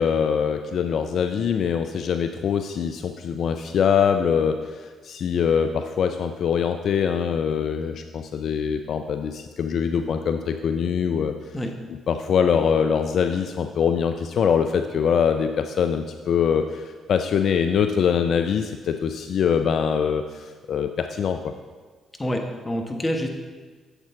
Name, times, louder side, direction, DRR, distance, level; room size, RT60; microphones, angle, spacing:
voice 1, 0.0-11.3 12.1-21.5, left 7 dB, 60° left, 7 dB, 0.4 m, -23 dB
voice 2, 22.2-23.3, equal, 20° left, 3 dB, 1.4 m, -27 dB
8.1 x 7.4 x 3.7 m, 1.4 s
hypercardioid pair, 45°, 0 cm